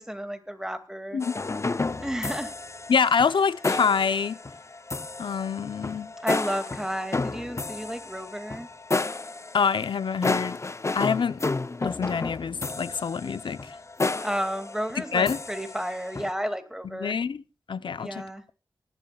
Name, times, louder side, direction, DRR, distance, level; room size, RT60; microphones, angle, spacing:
voice 1, 0.0-1.2 2.0-2.5 6.2-8.7 14.2-17.2 18.0-18.4, equal, 5° right, 2.1 m, -32 dB
sound 1, 1.2-16.3, left 3 dB, 35° left, 0.6 m, -32 dB
voice 2, 2.9-4.4 5.2-6.1 9.5-10.6 10.9-11.4 11.8-13.8 15.1-15.4 17.0-17.4 17.7-18.2, left 6 dB, 85° left, 0.7 m, -26 dB
23.5 x 12.0 x 2.3 m
cardioid pair, 55°, 8 cm